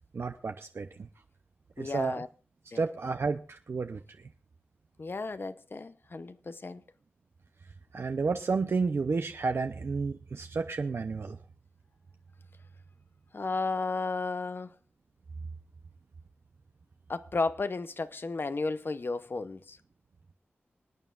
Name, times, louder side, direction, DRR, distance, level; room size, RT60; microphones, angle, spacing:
voice 1, 0.1-1.1 1.8-2.2 2.7-4.0 7.9-11.4, right 4 dB, 70° right, 0.7 m, -31 dB
voice 2, 1.8-2.3 2.7-2.8 5.0-6.8 13.3-14.7 17.1-19.8, left 3 dB, 55° left, 0.8 m, -33 dB
26.0 x 9.3 x 2.5 m
wide cardioid pair, 75°, 4 cm